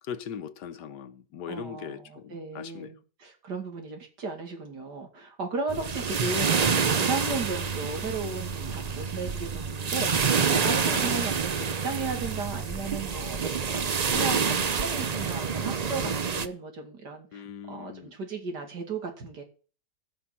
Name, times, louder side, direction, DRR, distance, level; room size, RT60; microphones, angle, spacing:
voice 1, 0.0-2.9 10.9-11.0 14.1-14.6 17.3-18.1, left 8 dB, 85° left, 1.5 m, -40 dB
voice 2, 1.5-19.4, right 3 dB, 90° right, 3.0 m, -35 dB
sound 1, 5.7-16.5, right 6 dB, 65° right, 0.4 m, -27 dB
15.5 x 6.1 x 5.9 m
omnidirectional pair, 1.8 m